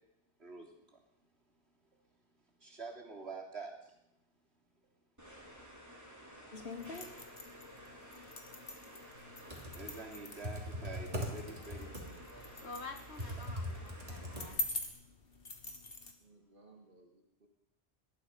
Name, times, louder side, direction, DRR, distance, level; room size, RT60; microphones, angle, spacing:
voice 1, 0.4-1.0 2.6-4.0 9.7-11.9, right 3 dB, 70° right, -1 dB, 3.8 m, -46 dB
sound 1, 5.2-14.5, equal, 15° right, 3.8 m, -53 dB
sound 2, 6.5-16.1, left 1 dB, 55° left, 2.0 m, -45 dB
Computer keyboard, 9.3-14.9, equal, 35° right, 3.1 m, -42 dB
voice 2, 11.2-12.6 13.3-14.1 16.2-17.5, right 2 dB, 50° right, 1 dB, 2.3 m, -61 dB
voice 3, 12.5-14.6, left 3 dB, 75° left, 7 dB, 2.0 m, -48 dB
20.0 x 13.0 x 5.5 m, 0.85 s
omnidirectional pair, 1.1 m